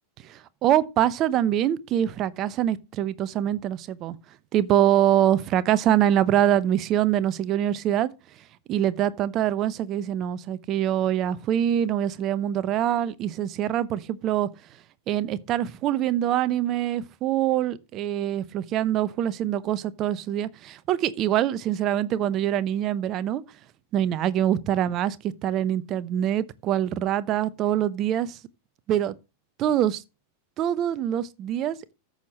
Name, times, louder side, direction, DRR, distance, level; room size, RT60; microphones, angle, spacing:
voice 1, 0.2-4.2 4.5-8.1 8.7-14.5 15.1-23.4 23.9-28.4 28.9-29.1 29.6-30.0 30.6-31.9, right 11 dB, 35° right, 0.8 m, -24 dB
14.0 x 6.6 x 3.1 m
figure-of-eight pair, 90°, 0 cm